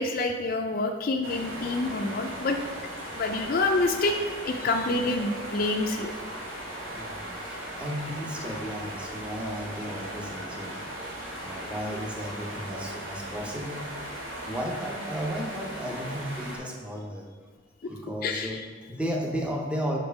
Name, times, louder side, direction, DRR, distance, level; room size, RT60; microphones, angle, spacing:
voice 1, 0.0-2.6 3.2-4.2 4.5-6.1 18.2-18.6, left 2 dB, 45° left, 3 dB, 0.4 m, -27 dB
sound 1, 1.2-16.6, right 1 dB, 80° right, 1.9 m, -38 dB
voice 2, 6.9-11.0 11.3-13.9 14.4-17.3 17.9-20.0, equal, 5° right, 0 dB, 0.6 m, -34 dB
5.2 x 4.3 x 6.0 m, 1.5 s
head